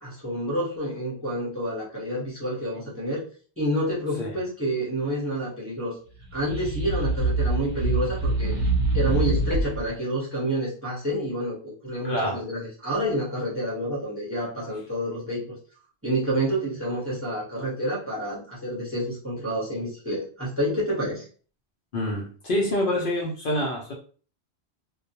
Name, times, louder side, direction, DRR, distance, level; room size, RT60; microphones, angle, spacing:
voice 1, 0.0-3.2 3.6-5.9 6.3-8.5 8.9-15.6 16.0-21.3, equal, 15° right, -6 dB, 0.9 m, -28 dB
sound 1, 6.2-9.9, right 2 dB, 85° right, 0.9 m, -25 dB
voice 2, 12.0-12.4 21.9-23.9, left 1 dB, 60° left, -2 dB, 0.7 m, -26 dB
2.3 x 2.1 x 2.8 m, 0.41 s
omnidirectional pair, 1.1 m